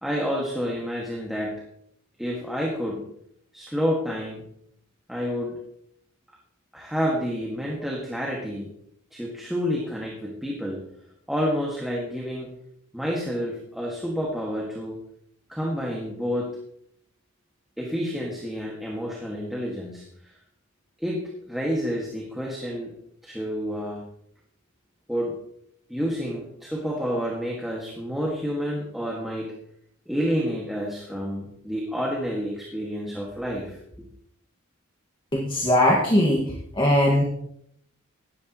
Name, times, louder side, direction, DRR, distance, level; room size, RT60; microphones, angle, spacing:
voice 1, 0.0-1.6 2.2-3.1 3.5-4.4 5.1-5.6 6.7-8.7 9.1-10.9 11.3-12.5 12.9-15.0 15.5-16.6 17.8-20.0 21.0-22.9 23.2-24.0 25.1-25.4 25.9-29.5 30.1-33.8, equal, ahead, -2 dB, 2.0 m, -29 dB
voice 2, 35.3-36.5 36.8-37.2, left 1 dB, 25° left, -2 dB, 1.9 m, -20 dB
16.5 x 12.5 x 3.1 m, 0.71 s
head